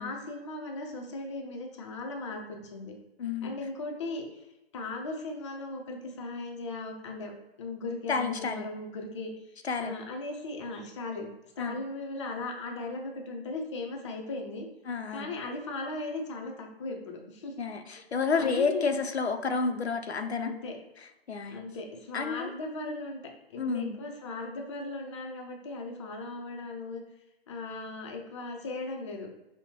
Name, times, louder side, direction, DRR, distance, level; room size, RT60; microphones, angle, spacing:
voice 1, 0.0-2.9 3.4-4.5 4.7-9.5 9.8-11.3 11.6-14.7 15.1-17.5 18.4-18.9 20.4-20.8 21.5-23.2 23.5-27.0 27.5-29.3, left 2 dB, 30° left, 1 dB, 0.5 m, -37 dB
voice 2, 3.2-3.5 8.1-8.7 9.6-10.0 11.6-11.8 14.9-15.3 17.6-20.5 21.3-21.6 22.1-22.5 23.6-24.0, left 4 dB, 85° left, 7 dB, 0.5 m, -30 dB
5.5 x 2.1 x 2.7 m, 0.95 s
figure-of-eight pair, 135°, 31 cm